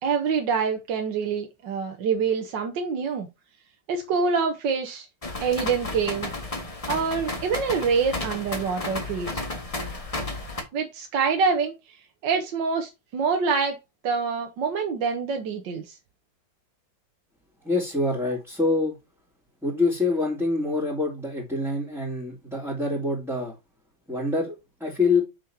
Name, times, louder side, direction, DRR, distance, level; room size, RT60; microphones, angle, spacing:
voice 1, 0.0-3.3 3.9-5.1 5.4-6.3 6.9-9.4 10.7-12.0 12.2-13.8 14.0-16.0, right 5 dB, 70° right, 1.6 m, -26 dB
sound 1, 5.2-10.6, left 2 dB, 20° left, 1.4 m, -33 dB
voice 2, 17.6-18.9 19.6-23.5 24.1-24.5 24.8-25.2, left 3 dB, ahead, 2.7 m, -25 dB
7.2 x 6.3 x 2.8 m
omnidirectional pair, 2.1 m